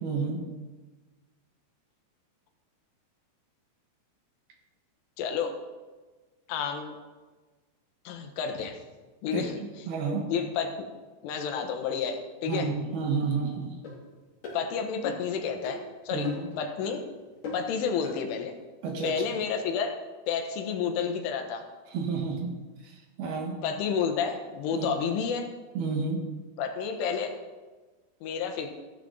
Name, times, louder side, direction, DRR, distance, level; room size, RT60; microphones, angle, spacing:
voice 1, 0.0-0.5 9.3-10.3 12.5-13.7 16.1-16.5 18.8-19.1 21.9-22.6 22.8-23.6 24.7-24.9 25.7-26.2, right 4 dB, 65° right, 2 dB, 3.1 m, -31 dB
voice 2, 5.2-5.5 6.5-7.0 8.1-8.8 9.2-9.6 10.3-10.9 11.2-12.7 14.5-16.3 16.6-17.0 17.5-18.6 19.0-20.0 20.3-21.7 23.6-25.5 26.6-27.4 28.2-28.7, left 6 dB, 90° left, 5 dB, 3.8 m, -30 dB
sound 1, 13.8-14.0 14.4-14.6 15.0-15.3 15.6-15.8 16.2-16.6 16.8-17.0 17.4-17.7 18.0-18.2, left 3 dB, 45° left, 4.9 m, -37 dB
15.0 x 12.5 x 3.9 m, 1.3 s
omnidirectional pair, 5.5 m